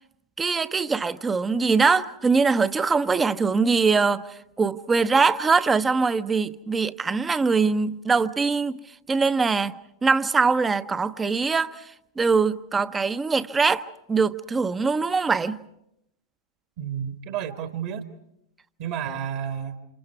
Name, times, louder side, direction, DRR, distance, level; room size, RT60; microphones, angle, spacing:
voice 1, 0.4-8.8 9.1-9.7 10.0-15.6, right 4 dB, 15° right, 0.8 m, -22 dB
voice 2, 16.8-18.0 18.8-19.8, right 9 dB, 50° right, 1.7 m, -31 dB
29.0 x 27.5 x 4.7 m
figure-of-eight pair, 90°, 0 cm